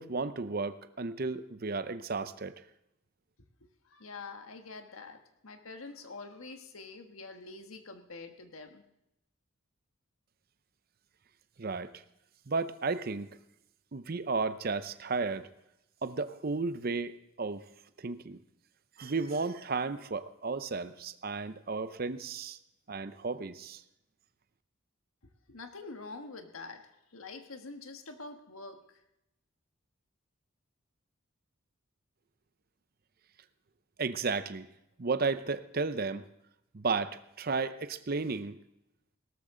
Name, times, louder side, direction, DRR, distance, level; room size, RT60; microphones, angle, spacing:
voice 1, 0.0-2.5 11.6-12.0 12.5-13.4 13.9-15.5 16.0-17.7 18.0-18.4 19.0-22.6 22.9-23.8 34.0-34.7 35.0-36.3 36.7-38.6, right 4 dB, 45° right, 12 dB, 0.6 m, -33 dB
voice 2, 3.8-8.8 25.5-29.0, left 3 dB, 80° left, 5 dB, 1.5 m, -46 dB
17.5 x 13.0 x 3.8 m, 0.83 s
head